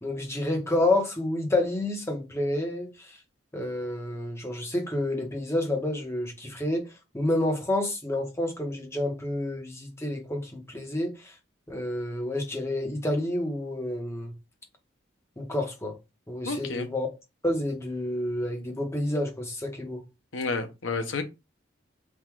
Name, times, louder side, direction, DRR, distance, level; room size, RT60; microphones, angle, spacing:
voice 1, 0.0-2.9 3.5-6.9 7.1-11.1 11.7-14.3 15.4-15.9 16.3-17.1 17.4-20.0, left 1 dB, 15° left, 1.0 m, -29 dB
voice 2, 16.5-16.9 20.3-21.2, left 3 dB, 80° left, 0.8 m, -30 dB
3.7 x 2.5 x 4.5 m
head